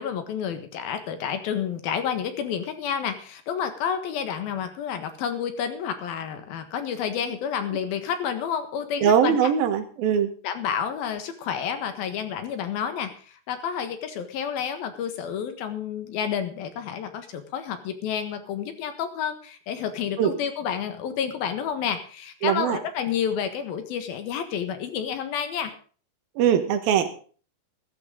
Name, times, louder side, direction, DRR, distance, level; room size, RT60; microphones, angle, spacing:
voice 1, 0.0-9.5 10.4-25.7, left 8 dB, 75° left, 8 dB, 3.3 m, -30 dB
voice 2, 9.0-10.3 20.2-20.3 22.4-22.8 26.4-27.2, right 8 dB, 75° right, 9 dB, 3.2 m, -21 dB
15.0 x 14.0 x 3.9 m, 0.41 s
omnidirectional pair, 4.3 m